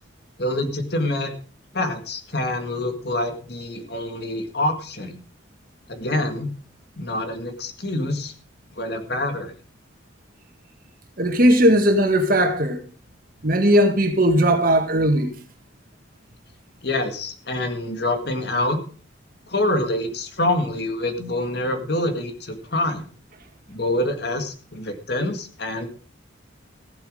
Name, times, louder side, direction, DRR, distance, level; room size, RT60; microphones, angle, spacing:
voice 1, 0.4-1.3 1.7-5.2 5.9-6.5 7.0-8.3 8.8-9.5 16.8-18.8 19.5-23.0 23.7-25.9, left 1 dB, 55° left, 1.9 m, -26 dB
voice 2, 11.2-12.8 13.4-15.3, equal, 45° right, 1.8 m, -18 dB
15.5 x 8.1 x 5.0 m
head